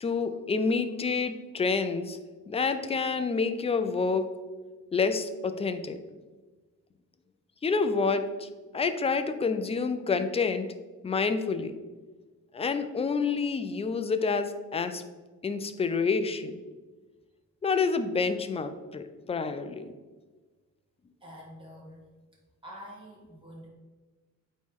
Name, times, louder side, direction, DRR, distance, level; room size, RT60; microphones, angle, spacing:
voice 1, 0.0-2.2 2.5-4.3 4.9-6.0 7.6-8.5 8.7-10.7 11.0-11.8 12.5-15.0 15.4-16.6 17.6-19.9, left 4 dB, 20° left, 9 dB, 0.4 m, -28 dB
voice 2, 21.2-22.1 22.6-23.7, equal, 15° right, -4 dB, 1.6 m, -46 dB
8.9 x 3.2 x 3.6 m, 1.3 s
cardioid pair, 135°, 32 cm